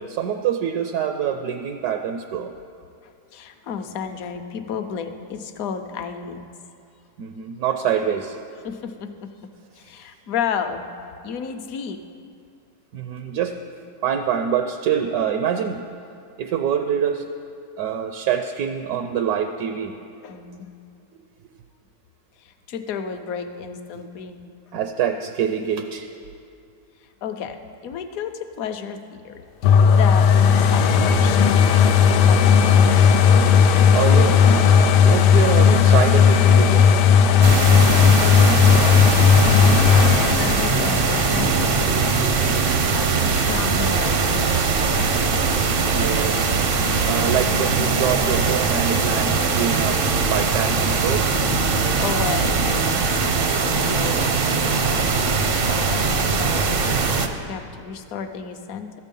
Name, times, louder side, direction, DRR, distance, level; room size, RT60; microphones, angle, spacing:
voice 1, 0.0-2.5 7.2-8.4 12.9-13.6 14.0-15.8 16.4-17.3 17.8-19.9 23.9-24.1 24.7-26.1 33.6-33.7 33.9-37.0 42.4-42.8 45.9-46.5 46.8-50.0 50.3-51.2, right 8 dB, 75° right, 7 dB, 1.0 m, -25 dB
voice 2, 3.0-6.4 8.6-9.3 9.7-10.9 11.2-12.0 20.2-20.7 22.4-24.4 27.0-31.7 32.0-32.7 37.6-39.6 39.9-41.8 42.9-45.4 51.7-59.0, left 7 dB, 65° left, 8 dB, 1.1 m, -33 dB
sound 1, 29.6-43.3 43.8-43.9, left 7 dB, 90° left, 1.2 m, -15 dB
sound 2, 37.4-57.3, right 4 dB, 55° right, 0.6 m, -21 dB
13.5 x 8.3 x 5.3 m, 2.4 s
omnidirectional pair, 1.7 m